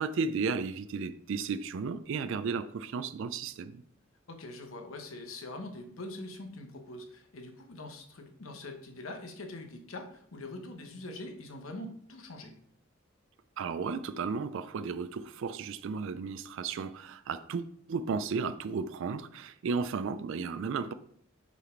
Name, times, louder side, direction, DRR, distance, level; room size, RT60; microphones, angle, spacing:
voice 1, 0.0-3.8 13.6-20.9, right 5 dB, 65° right, 0.4 m, -34 dB
voice 2, 4.3-12.5, left 2 dB, 80° left, 1.0 m, -43 dB
6.0 x 4.0 x 4.4 m
head